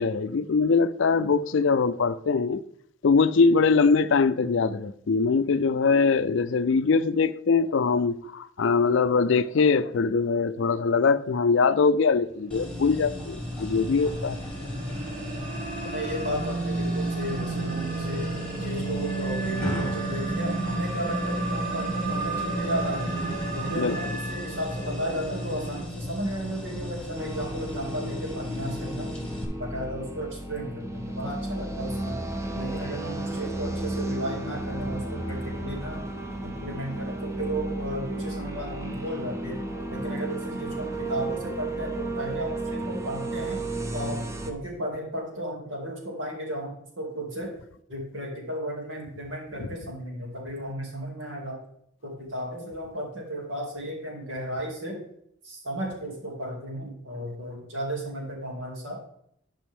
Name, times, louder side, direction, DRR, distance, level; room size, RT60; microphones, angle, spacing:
voice 1, 0.0-2.6 3.0-14.4 23.8-23.9, left 4 dB, 70° left, 0.5 m, -22 dB
sound 1, 12.5-29.4, left 1 dB, 5° left, 1.7 m, -36 dB
sound 2, 12.7-25.8, right 3 dB, 50° right, 2.1 m, -32 dB
voice 2, 15.9-18.3 18.6-23.2 23.5-29.1 29.6-32.2 32.5-36.0 36.4-39.6 39.9-43.6 43.9-47.5 47.9-51.6 52.0-55.0 55.4-59.0, equal, 70° right, 2.6 m, -34 dB
sound 3, 27.2-44.5, right 2 dB, 15° right, 0.8 m, -33 dB
11.5 x 5.3 x 3.6 m
head